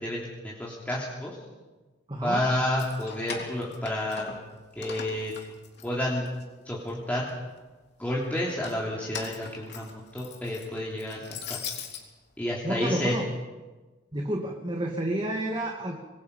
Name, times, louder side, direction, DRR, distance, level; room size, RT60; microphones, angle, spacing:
voice 1, 0.0-1.4 2.2-4.3 4.8-5.3 5.8-6.3 6.6-7.3 8.0-11.6 12.4-13.2, left 1 dB, 10° left, -5 dB, 3.1 m, -30 dB
voice 2, 2.1-2.4 12.6-13.3 14.1-16.0, right 1 dB, 25° right, 1 dB, 2.2 m, -30 dB
Keys jangling, 2.6-4.5 4.8-6.4 6.9-7.6 8.4-12.0, left 6 dB, 60° left, 3.2 m, -40 dB
25.5 x 22.0 x 5.5 m, 1.2 s
head